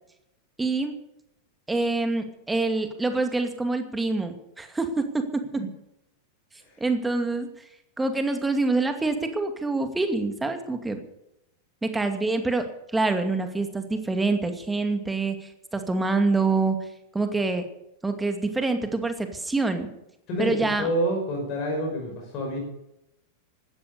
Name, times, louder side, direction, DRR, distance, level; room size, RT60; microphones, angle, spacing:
voice 1, 0.6-1.0 1.7-5.2 6.8-7.5 8.0-11.0 11.8-12.6 12.9-16.8 17.1-17.6 18.0-19.9 20.4-20.9, right 3 dB, 10° right, 6 dB, 2.4 m, -26 dB
voice 2, 20.3-22.6, right 1 dB, 40° left, 0 dB, 5.6 m, -28 dB
16.5 x 12.5 x 6.9 m, 0.83 s
figure-of-eight pair, 90°, 0 cm